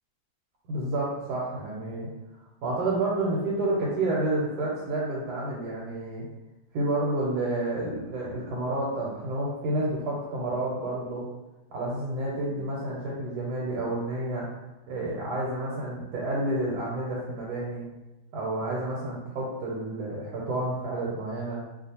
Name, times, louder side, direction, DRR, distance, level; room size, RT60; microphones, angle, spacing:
voice 1, 0.7-2.1 2.6-6.3 6.7-11.3 11.7-14.5 14.9-17.9 18.3-21.6, right 2 dB, 80° right, -4 dB, 1.1 m, -30 dB
2.4 x 2.3 x 2.8 m, 1.0 s
omnidirectional pair, 1.7 m